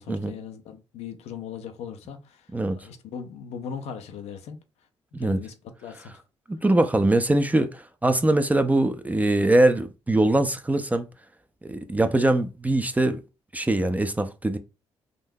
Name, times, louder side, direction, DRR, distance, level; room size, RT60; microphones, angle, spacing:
voice 1, 0.0-2.4 2.8-4.6 5.2-5.5 5.8-6.2, left 7 dB, 80° left, 0.5 m, -38 dB
voice 2, 6.5-11.1 11.6-13.2 13.5-14.6, right 2 dB, 15° right, 0.4 m, -22 dB
3.7 x 2.6 x 2.2 m
supercardioid pair, 60°, 11 cm